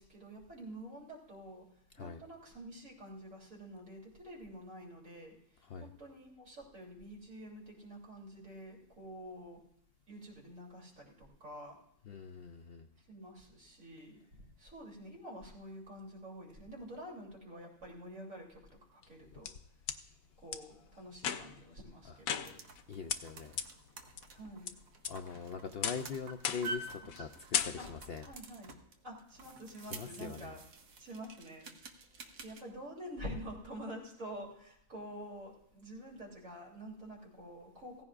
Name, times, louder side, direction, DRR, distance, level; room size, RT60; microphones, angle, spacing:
voice 1, 0.0-1.7 2.0-5.3 5.8-9.6 10.1-11.8 13.1-19.5 20.4-22.6 24.3-24.7 27.8-27.9 28.2-28.7 29.0-30.6 31.0-31.7 32.4-38.0, equal, 70° right, -2 dB, 3.5 m, -48 dB
voice 2, 12.1-12.9 22.1-22.2 22.9-23.6 25.1-28.3 29.8-30.5, left 6 dB, 60° left, 6 dB, 0.7 m, -42 dB
sound 1, 19.0-20.0 20.5-20.6 21.2-21.7 22.3-22.8 23.1-23.2 23.6-23.7 24.2-24.7 25.0-25.4 25.8-26.1 26.4-26.8 27.1-27.3 27.5-28.1, left 8 dB, 85° left, 1.1 m, -36 dB
sound 2, 22.2-32.6, right 2 dB, 90° right, 1.5 m, -49 dB
16.5 x 15.0 x 2.4 m, 0.75 s
omnidirectional pair, 1.4 m